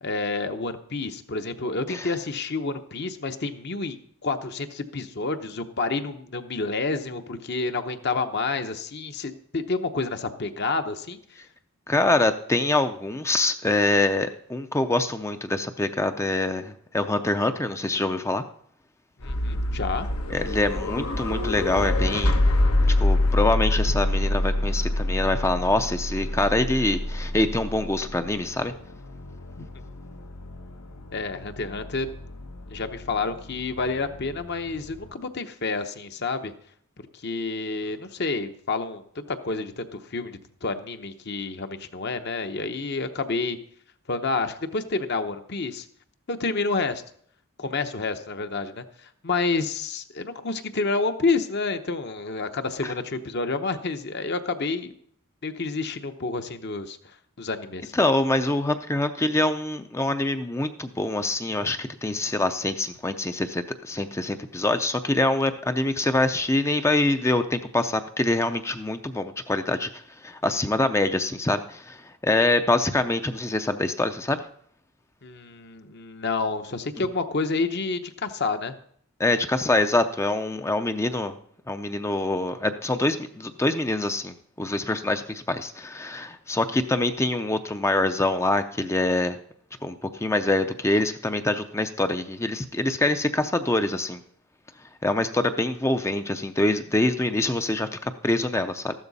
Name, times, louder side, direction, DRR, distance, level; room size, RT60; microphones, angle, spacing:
voice 1, 0.0-11.2 19.2-20.1 29.6-29.7 31.1-32.1 32.7-36.5 37.0-43.6 44.1-45.9 46.3-47.0 47.6-54.9 55.4-57.9 75.2-78.8, left 3 dB, 50° left, 8 dB, 0.9 m, -29 dB
voice 2, 11.9-18.4 20.3-22.4 23.0-28.7 52.8-52.9 57.9-74.5 77.0-77.1 79.2-81.4 81.7-89.4 89.8-94.2 95.0-98.9, left 2 dB, 10° left, 8 dB, 0.5 m, -25 dB
sound 1, 19.2-35.1, left 1 dB, 85° left, 1.3 m, -27 dB
14.0 x 12.0 x 4.1 m, 0.64 s
head